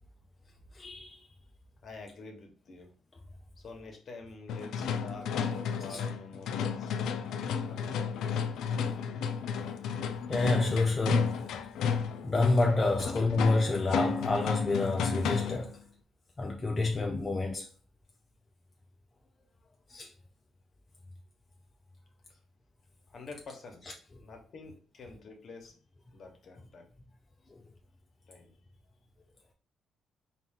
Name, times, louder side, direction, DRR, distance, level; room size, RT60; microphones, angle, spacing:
voice 1, 0.7-1.3 5.9-6.0 10.3-11.5 11.9-15.8 16.4-17.7 19.9-20.1 27.5-27.6, left 2 dB, 30° left, 0.5 m, -29 dB
voice 2, 1.8-2.9 3.6-6.9 7.6-8.2 8.8-9.0 13.0-13.1 22.3-22.4 23.1-23.8 24.2-25.8 26.1-26.9 28.3-28.5, left 3 dB, 55° left, 1.1 m, -47 dB
sound 1, 4.5-15.7, left 6 dB, 80° left, 0.4 m, -32 dB
4.1 x 2.4 x 3.6 m
cardioid pair, 90°, 0 cm